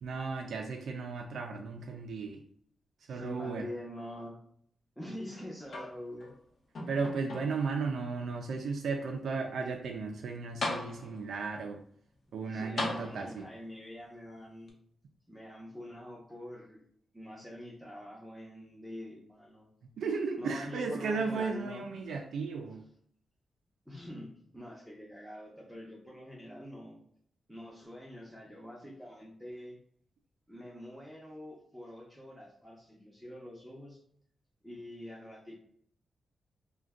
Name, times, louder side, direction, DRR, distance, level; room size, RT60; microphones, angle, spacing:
voice 1, 0.0-2.4 3.1-3.6 6.9-11.8 12.3-13.4 20.0-22.8, right 4 dB, 85° right, 2 dB, 0.3 m, -35 dB
voice 2, 3.1-4.4 5.0-6.3 12.4-14.8 15.3-16.8 17.1-19.7 20.4-21.9 23.9-27.0 27.5-29.8 30.5-34.0 34.6-35.6, left 1 dB, ahead, -3 dB, 0.6 m, -45 dB
sound 1, 5.7-6.4 6.8-7.8 8.5-8.6 10.1-10.2 10.6-11.4 12.8-13.6 14.7-14.8, left 2 dB, 55° left, 0.7 m, -38 dB
2.5 x 2.2 x 3.5 m, 0.62 s
wide cardioid pair, 135°, 0 cm